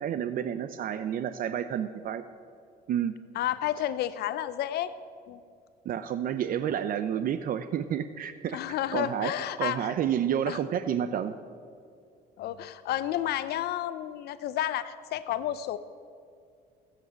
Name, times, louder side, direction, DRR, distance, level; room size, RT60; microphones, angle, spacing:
voice 1, 0.0-2.2 2.9-3.2 5.8-8.6 8.9-9.3 9.6-11.4, right 9 dB, 55° right, 12 dB, 0.6 m, -30 dB
voice 2, 3.3-4.9 5.3-5.4 8.5-9.9 10.5-10.6 12.4-15.8, left 12 dB, 70° left, 14 dB, 0.6 m, -31 dB
17.0 x 7.7 x 8.1 m, 2.3 s
cardioid pair, 110°, 17 cm